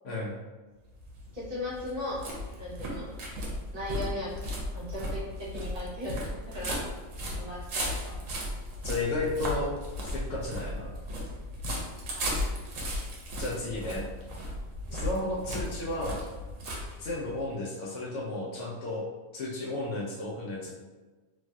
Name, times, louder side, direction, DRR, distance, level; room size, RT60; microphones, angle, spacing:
sound 1, 0.9-17.4, equal, 75° right, 1.0 m, -36 dB
voice 1, 1.3-2.2 2.6-3.1 3.7-4.4 4.7-6.8 7.4-8.2 12.1-12.5 14.9-15.1, left 1 dB, 45° right, -10 dB, 1.2 m, -37 dB
voice 2, 8.8-9.7 10.0-10.9 13.4-14.1 14.9-16.2 17.0-19.1 19.3-20.7, left 2 dB, 70° left, -3 dB, 0.9 m, -33 dB
3.1 x 2.6 x 2.3 m, 1.2 s
omnidirectional pair, 1.4 m